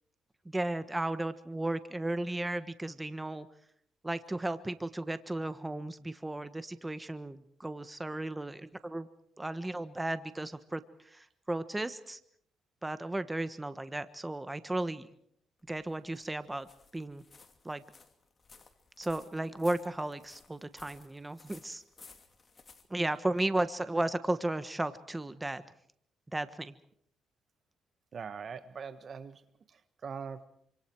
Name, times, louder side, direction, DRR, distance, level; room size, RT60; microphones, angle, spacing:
voice 1, 0.4-3.5 4.0-9.1 9.4-12.2 12.8-15.1 15.7-16.7 16.9-17.2 17.6-17.8 19.0-21.8 22.9-25.6 26.3-26.7, right 1 dB, 15° right, 12 dB, 1.3 m, -34 dB
sound 1, 15.6-23.8, left 4 dB, 35° left, 2.7 m, -58 dB
voice 2, 28.1-29.4 29.7-30.5, right 6 dB, 50° right, 12 dB, 1.4 m, -42 dB
27.0 x 26.0 x 4.7 m, 0.65 s
cardioid pair, 90°, 0 cm